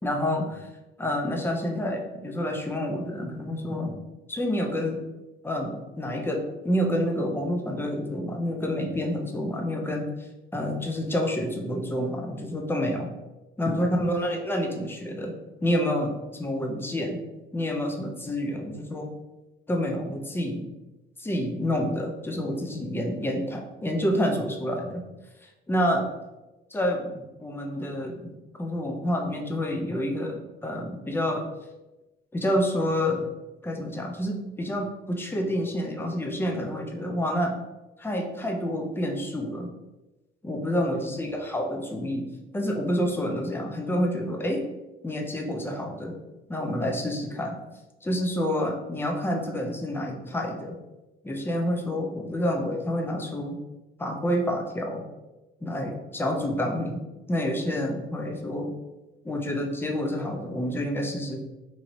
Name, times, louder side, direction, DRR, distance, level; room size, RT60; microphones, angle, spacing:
voice 1, 0.0-0.7 1.0-4.0 4.3-5.0 5.4-10.1 10.5-13.1 13.6-15.3 15.6-17.2 17.5-19.1 19.7-20.7 21.2-25.0 25.4-26.0 26.7-28.3 28.6-31.5 32.3-33.3 33.6-37.6 38.0-39.7 40.4-42.3 42.5-44.6 45.0-46.2 46.5-47.6 48.0-50.8 51.2-53.6 54.0-55.1 55.6-57.0 57.3-58.7 59.2-61.4, equal, 10° left, 2 dB, 0.5 m, -28 dB
3.0 x 2.8 x 2.6 m, 1.0 s
cardioid pair, 90°, 20 cm